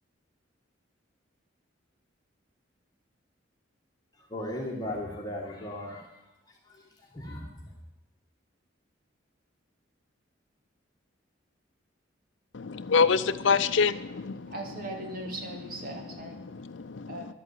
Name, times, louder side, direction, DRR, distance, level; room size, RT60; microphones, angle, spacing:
voice 1, 4.3-6.3 6.7-6.8 7.1-7.7, left 1 dB, 20° left, -2 dB, 1.9 m, -37 dB
voice 2, 12.5-14.5 16.4-17.2, left 5 dB, 70° left, 11 dB, 0.6 m, -26 dB
voice 3, 14.5-16.3 17.1-17.3, right 1 dB, 50° right, 2 dB, 2.7 m, -39 dB
12.0 x 8.8 x 8.3 m, 0.88 s
head